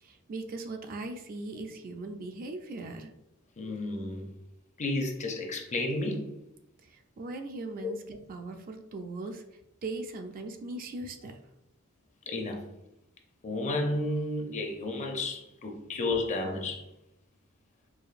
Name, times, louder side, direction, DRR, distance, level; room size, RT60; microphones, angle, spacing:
voice 1, 0.0-3.1 6.9-9.4 9.8-11.4, right 2 dB, 40° right, 0.3 m, -39 dB
voice 2, 3.6-4.3 4.8-6.3 7.8-7.9 12.3-12.6 13.4-16.8, left 2 dB, 35° left, 0.5 m, -32 dB
4.7 x 2.5 x 2.4 m
head